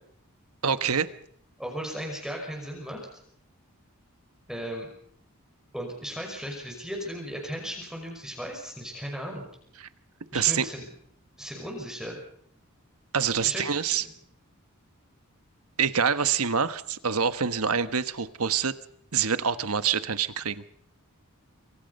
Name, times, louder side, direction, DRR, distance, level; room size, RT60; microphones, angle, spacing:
voice 1, 0.6-1.1 9.8-9.9 10.3-10.6 13.1-14.0 15.8-18.7 19.1-20.7, right 7 dB, 80° right, 12 dB, 1.3 m, -26 dB
voice 2, 1.6-3.1 4.5-4.9 5.7-9.5 10.3-10.9 11.4-12.2 13.4-14.1, equal, 5° right, 0 dB, 5.9 m, -36 dB
26.5 x 24.0 x 5.5 m, 0.66 s
head